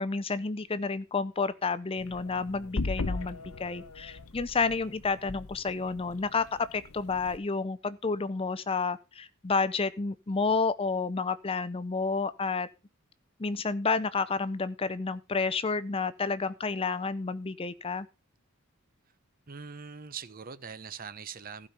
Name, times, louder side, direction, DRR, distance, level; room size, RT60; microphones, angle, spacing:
voice 1, 0.0-12.7 13.4-18.1, left 4 dB, 25° left, 0.5 m, -30 dB
sound 1, 2.0-7.4, left 3 dB, 80° left, 0.9 m, -38 dB
voice 2, 19.5-21.7, right 6 dB, 40° right, 0.8 m, -42 dB
15.0 x 5.2 x 5.8 m
head